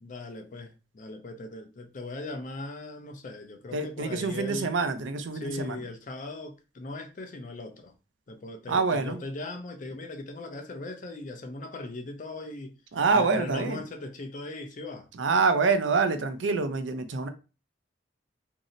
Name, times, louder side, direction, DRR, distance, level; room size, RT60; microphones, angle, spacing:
voice 1, 0.0-4.7 5.3-7.9 8.3-12.8 13.1-15.1, left 2 dB, 45° left, 0.5 m, -39 dB
voice 2, 3.7-5.8 8.7-9.2 12.9-13.8 15.2-17.3, right 4 dB, 85° right, 0.5 m, -26 dB
2.6 x 2.0 x 3.7 m
head